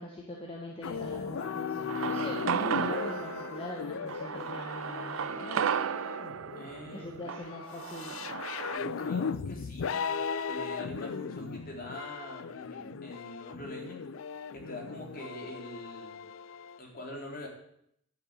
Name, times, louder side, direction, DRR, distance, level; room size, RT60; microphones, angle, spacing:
voice 1, 0.0-5.7 6.9-8.4, left 1 dB, 30° left, -1 dB, 1.6 m, -42 dB
sound 1, 0.8-16.8, left 6 dB, 75° left, 0.4 m, -37 dB
sound 2, 1.9-8.8, right 7 dB, 75° right, 0.4 m, -34 dB
voice 2, 6.5-7.2 8.7-10.2 10.5-14.0 14.5-16.2 16.8-17.5, left 1 dB, 45° left, -2 dB, 4.1 m, -44 dB
12.5 x 7.1 x 8.3 m, 0.71 s
head